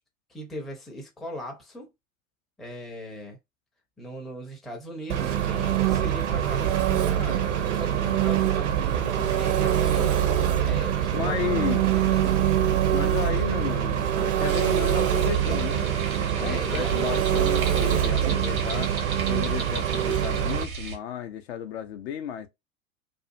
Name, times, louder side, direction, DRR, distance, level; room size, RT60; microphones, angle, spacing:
voice 1, 0.3-1.9 2.6-3.4 4.0-7.5 7.7-10.2 10.6-12.6 16.4-17.6, left 1 dB, ahead, 0.5 m, -38 dB
Engine, 5.1-20.6, right 10 dB, 60° right, 0.7 m, -24 dB
voice 2, 10.7-11.8 12.9-15.9 16.1-22.5, left 10 dB, 50° left, 0.5 m, -33 dB
sound 1, 14.5-21.0, right 4 dB, 80° right, 1.0 m, -35 dB
2.6 x 2.3 x 2.6 m
figure-of-eight pair, 90°, 42 cm